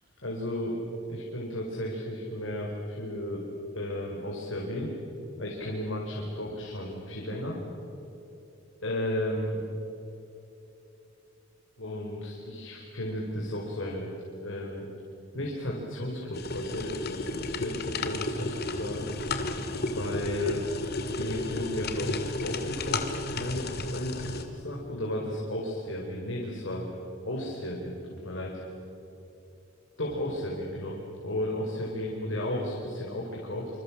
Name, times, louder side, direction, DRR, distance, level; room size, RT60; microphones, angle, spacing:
voice 1, 0.2-0.8 1.1-3.5 3.7-4.9 5.4-7.6 8.8-9.6 11.8-14.1 14.4-14.8 15.3-19.1 19.8-20.7 21.1-23.0 23.3-26.9 27.2-28.0 28.2-28.6 30.0-33.7, left 1 dB, 75° left, -2 dB, 4.5 m, -34 dB
sound 1, 16.3-24.4, left 2 dB, 55° left, 2.2 m, -33 dB
26.5 x 26.5 x 7.3 m, 2.9 s
head